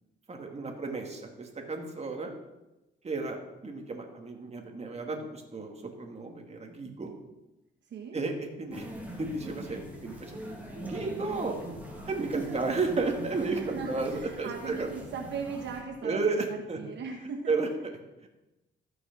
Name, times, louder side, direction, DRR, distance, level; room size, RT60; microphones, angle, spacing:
voice 1, 0.3-2.4 3.0-7.1 8.1-8.3 8.6-8.9 9.2-10.4 10.8-11.7 12.1-14.9 16.0-16.8 17.5-17.7, right 3 dB, 30° right, 3 dB, 2.3 m, -33 dB
sound 1, 8.7-15.8, right 1 dB, 10° right, 2.9 m, -42 dB
voice 2, 12.2-12.6 13.3-17.9, right 5 dB, 65° right, 1 dB, 1.4 m, -39 dB
14.0 x 6.4 x 6.1 m, 0.99 s
cardioid pair, 90°, 20 cm